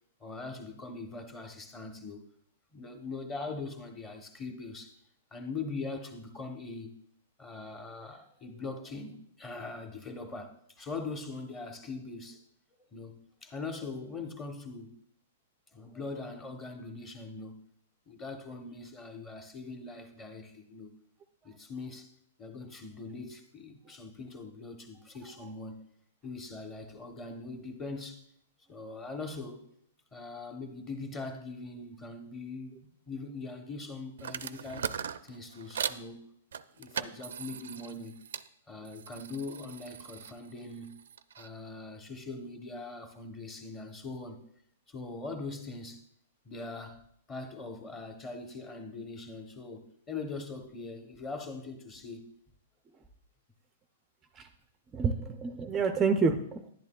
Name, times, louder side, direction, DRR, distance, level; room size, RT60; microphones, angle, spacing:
voice 1, 0.2-2.2 2.7-5.0 5.3-6.9 7.4-12.4 12.8-14.9 15.7-17.6 18.1-20.9 21.4-22.1 22.4-25.9 26.2-28.2 28.7-29.6 30.1-34.9 35.2-36.3 36.8-38.1 38.7-41.0 41.4-44.4 44.9-46.0 46.4-47.0 47.3-52.3, left 3 dB, 15° left, 0.9 m, -41 dB
sound 1, 34.2-36.0 36.5-38.5 38.8-41.5, right 8 dB, 85° right, 0.4 m, -39 dB
voice 2, 54.9-56.7, right 4 dB, 15° right, 0.4 m, -28 dB
11.0 x 10.5 x 2.3 m
hypercardioid pair, 160°, 0 cm